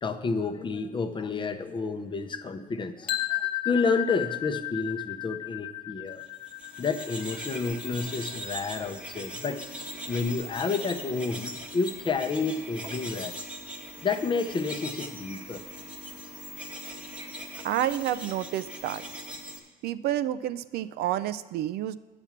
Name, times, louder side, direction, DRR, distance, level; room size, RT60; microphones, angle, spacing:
voice 1, 0.0-6.2 6.8-13.4 14.0-15.6, left 4 dB, 30° left, 8 dB, 0.6 m, -30 dB
sound 1, 3.1-9.0, left 16 dB, 65° left, 0.8 m, -34 dB
sound 2, 6.3-19.6, equal, 5° right, 1.0 m, -40 dB
voice 2, 17.6-19.0 19.8-22.0, right 12 dB, 70° right, 14 dB, 0.4 m, -29 dB
7.9 x 5.9 x 7.3 m, 1.3 s
cardioid pair, 110°, 17 cm